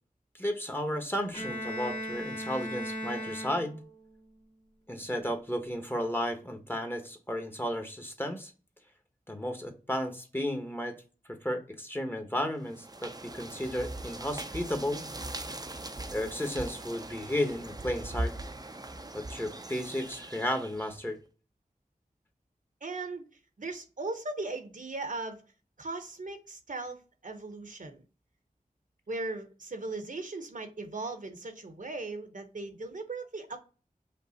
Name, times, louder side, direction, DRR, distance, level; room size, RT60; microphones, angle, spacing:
voice 1, 0.3-3.8 4.9-8.5 9.3-11.0 11.3-15.0 16.1-18.3 19.1-21.2, equal, 15° left, 1.0 m, -33 dB
Bowed string instrument, 1.3-4.1, equal, 40° left, 1.6 m, -37 dB
sound 1, 12.6-21.0, right 2 dB, 25° right, 0.5 m, -40 dB
voice 2, 22.8-23.3 23.6-25.4 25.8-28.0 29.1-33.6, right 3 dB, 60° right, 0.9 m, -38 dB
5.3 x 2.0 x 4.1 m
wide cardioid pair, 55°, 15 cm